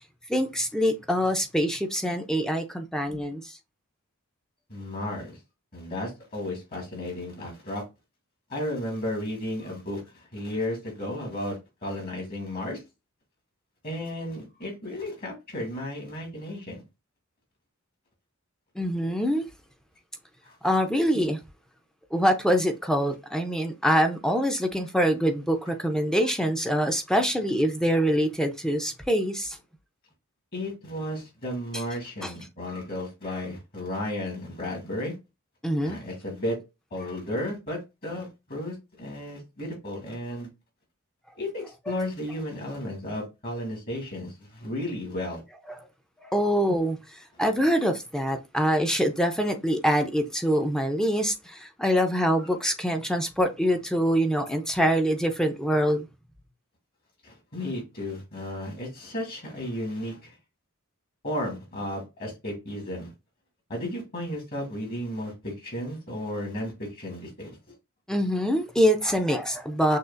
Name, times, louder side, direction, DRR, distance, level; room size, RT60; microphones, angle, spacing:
voice 1, 0.3-3.6 18.8-19.5 20.6-21.4 22.1-29.6 32.2-32.3 35.6-36.0 45.7-45.8 46.2-47.0 47.4-56.1 68.1-70.0, equal, 5° left, 0.5 m, -24 dB
voice 2, 4.7-5.4 5.7-7.8 8.5-12.8 13.8-16.8 20.4-20.5 30.5-35.1 35.8-36.6 36.9-40.5 41.4-45.4 57.2-60.3 61.2-63.1 63.7-67.6, left 1 dB, 45° left, 2.1 m, -34 dB
6.4 x 2.5 x 2.4 m
head